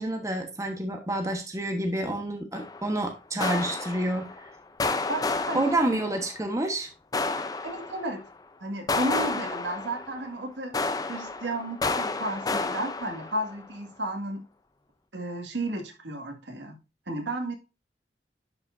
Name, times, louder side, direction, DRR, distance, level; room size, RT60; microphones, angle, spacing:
voice 1, 0.0-4.5 5.5-6.9, right 1 dB, 20° right, 4 dB, 1.2 m, -29 dB
Indoor Guns, 2.5-3.0 3.4-4.5 4.8-6.4 7.1-8.3 8.9-10.4 10.7-13.6, left 3 dB, 20° left, 0.6 m, -31 dB
voice 2, 5.1-6.0 7.6-8.2 8.6-10.7 11.1-14.4 15.1-16.8 17.1-17.5, right 1 dB, 90° right, 4 dB, 2.0 m, -33 dB
11.5 x 5.7 x 2.6 m, 0.29 s
head